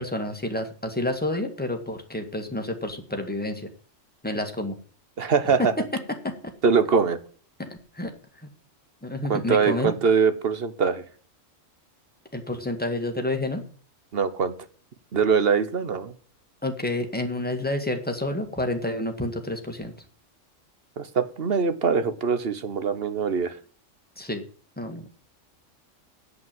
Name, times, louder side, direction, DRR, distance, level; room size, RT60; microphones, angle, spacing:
voice 1, 0.0-3.7 4.2-4.7 5.6-5.7 6.2-6.5 7.6-7.7 7.9-8.1 8.4-8.5 9.0-9.9 12.3-13.6 16.6-19.9 24.1-24.4 24.8-25.2, left 1 dB, 5° left, 4 dB, 1.8 m, -29 dB
voice 2, 5.2-5.7 6.6-7.2 9.3-11.0 14.1-14.5 15.1-16.1 21.0-23.6, right 5 dB, 50° right, 12 dB, 1.2 m, -23 dB
8.4 x 8.2 x 7.6 m, 0.43 s
omnidirectional pair, 1.4 m